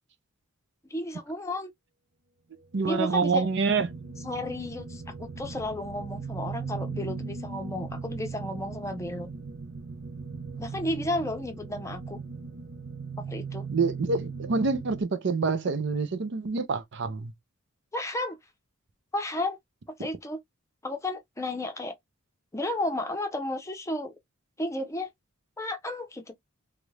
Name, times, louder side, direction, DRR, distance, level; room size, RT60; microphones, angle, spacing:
voice 1, 0.9-1.7 2.8-3.5 4.2-9.3 10.6-12.2 13.3-13.7 17.9-18.4 19.1-19.6 20.0-20.4 20.8-21.9 22.5-24.1 24.6-25.1 25.6-26.3, left 1 dB, 15° left, 0.6 m, -33 dB
voice 2, 2.7-3.9 13.7-17.3, right 4 dB, 55° right, 0.6 m, -26 dB
sound 1, 2.7-15.0, right 5 dB, 85° right, 0.8 m, -38 dB
3.0 x 2.5 x 3.2 m
head